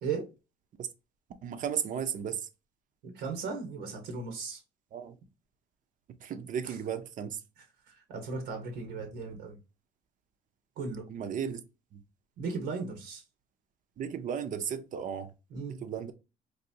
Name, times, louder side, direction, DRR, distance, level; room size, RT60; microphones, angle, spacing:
voice 1, 1.4-2.5 4.9-5.2 6.2-7.4 11.1-11.6 11.9-12.0 14.0-15.3 15.7-16.1, right 8 dB, 50° right, 0.6 m, -35 dB
voice 2, 3.0-4.6 6.6-6.7 7.9-9.6 10.8-11.0 12.4-13.2 15.5-15.8, right 4 dB, 90° right, 1.2 m, -36 dB
4.0 x 2.6 x 2.7 m
cardioid pair, 110°, 17 cm